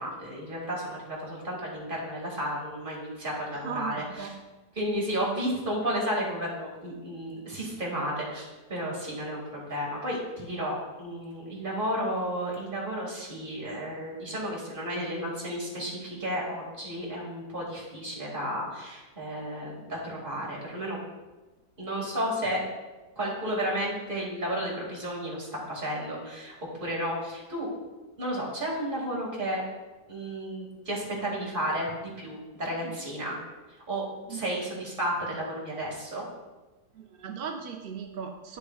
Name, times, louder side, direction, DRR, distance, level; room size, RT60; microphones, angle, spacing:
voice 1, 0.0-4.3 4.8-21.0 21.8-22.6 23.2-27.7 28.2-29.6 30.1-33.4 33.9-36.3, equal, 30° right, -4 dB, 2.3 m, -32 dB
voice 2, 3.5-4.3 32.8-32.9 34.3-34.5 36.9-38.6, right 6 dB, 65° right, 3 dB, 0.5 m, -37 dB
11.0 x 6.7 x 2.3 m, 1.2 s
omnidirectional pair, 1.7 m